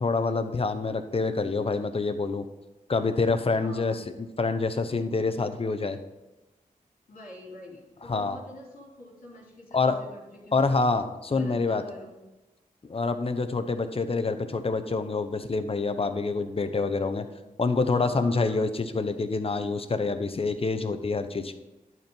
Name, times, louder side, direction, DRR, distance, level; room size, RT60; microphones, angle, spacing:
voice 1, 0.0-2.4 2.9-6.0 8.1-8.4 9.7-10.0 10.5-11.8 12.8-17.3 17.6-21.6, left 3 dB, 40° left, 8 dB, 0.9 m, -27 dB
voice 2, 3.5-4.0 7.1-10.8 11.3-12.2 17.9-18.6, left 1 dB, 75° left, -5 dB, 3.1 m, -46 dB
11.0 x 4.5 x 5.3 m, 1.1 s
cardioid pair, 60°, 14 cm